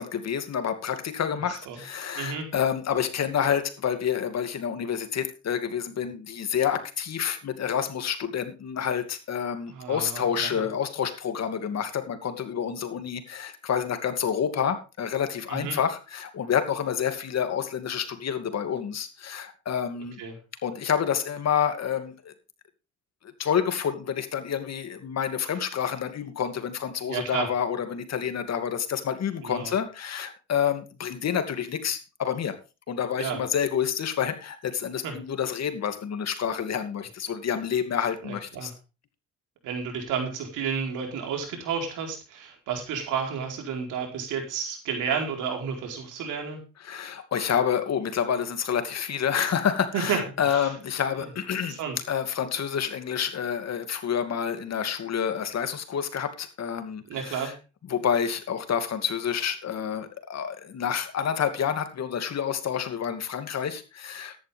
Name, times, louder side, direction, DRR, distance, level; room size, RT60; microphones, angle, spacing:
voice 1, 0.0-20.2 20.6-22.3 23.4-32.6 32.9-38.7 46.8-51.8 52.1-57.5 57.9-64.4, left 8 dB, 60° left, 8 dB, 2.6 m, -28 dB
voice 2, 2.1-2.5 9.7-10.7 15.5-15.8 20.2-20.4 27.1-27.5 29.4-29.7 33.2-33.4 35.0-35.1 38.2-38.7 39.6-46.6 49.9-50.2 50.5-50.7 51.2-51.3 51.8-52.0 57.1-57.5, right 6 dB, 90° right, 3 dB, 4.5 m, -31 dB
14.0 x 11.0 x 3.5 m, 0.30 s
cardioid pair, 90°, 30 cm